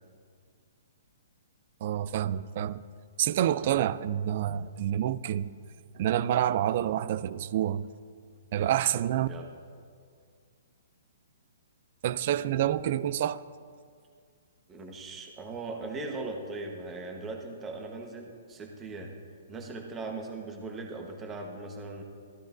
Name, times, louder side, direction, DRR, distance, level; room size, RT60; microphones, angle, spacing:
voice 1, 1.8-2.8 3.2-5.5 5.9-7.9 8.5-9.3 12.0-13.4, right 11 dB, 40° right, 0.3 m, -28 dB
voice 2, 14.7-19.2 19.5-22.0, right 3 dB, 15° right, 1.1 m, -39 dB
16.5 x 14.0 x 2.6 m
hypercardioid pair, 170°, 0 cm